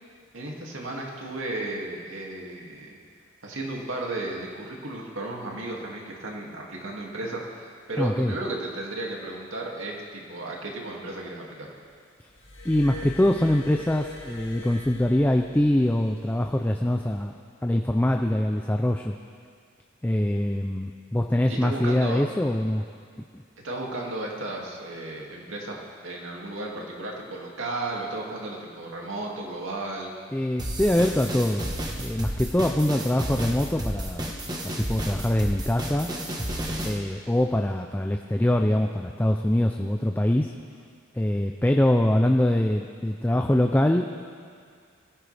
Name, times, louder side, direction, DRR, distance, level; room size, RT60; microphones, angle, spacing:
voice 1, 0.3-3.0 3.4-11.7 21.5-22.2 23.6-25.8 26.0-30.1, right 2 dB, 85° right, -2 dB, 2.4 m, -34 dB
voice 2, 8.0-8.4 12.6-17.3 17.6-19.1 20.0-22.8 23.2-23.4 30.3-31.7 32.0-34.3 34.6-36.1 36.8-40.5 41.1-44.2, left 1 dB, 10° left, 3 dB, 0.5 m, -24 dB
Glass, 12.4-16.0 16.9-17.1, left 2 dB, 75° left, 2.3 m, -41 dB
sound 1, 30.6-37.0, right 1 dB, 20° right, 1.3 m, -32 dB
22.5 x 15.0 x 3.4 m, 2.2 s
head